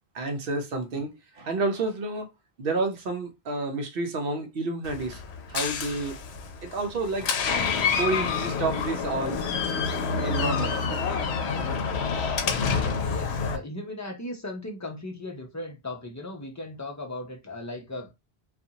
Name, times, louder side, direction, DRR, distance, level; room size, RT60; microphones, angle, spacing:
voice 1, 0.1-2.3 2.6-5.2 5.5-6.2 6.6-7.6 8.0-9.4 10.2-11.3, right 3 dB, 65° right, 0.8 m, -30 dB
Door, 4.8-13.6, left 5 dB, 80° left, 0.8 m, -28 dB
voice 2, 11.2-11.9 12.4-18.1, left 2 dB, 25° left, 0.4 m, -38 dB
2.5 x 2.4 x 2.7 m
omnidirectional pair, 1.1 m